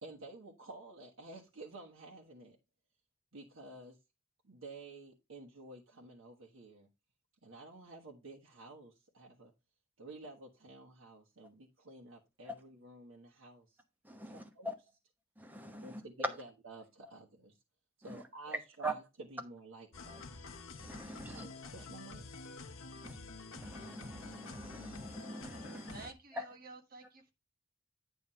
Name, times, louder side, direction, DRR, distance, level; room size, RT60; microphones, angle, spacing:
voice 1, 0.0-2.6 3.3-4.0 4.4-6.9 7.4-9.5 10.0-13.8 14.2-14.7 15.8-17.5 18.0-19.0 19.3-20.5 21.2-22.2 23.0-23.1, right 2 dB, 85° right, 1.4 m, -52 dB
voice 2, 14.0-14.7 15.4-16.4 17.0-17.1 18.0-19.0 20.1-20.2 20.8-21.5 23.0-23.2 23.5-26.1 26.3-26.4, right 1 dB, 10° right, 0.9 m, -42 dB
sound 1, 19.9-26.1, left 3 dB, 90° left, 0.9 m, -49 dB
voice 3, 25.9-27.3, right 4 dB, 45° right, 1.4 m, -51 dB
9.4 x 3.5 x 5.6 m
head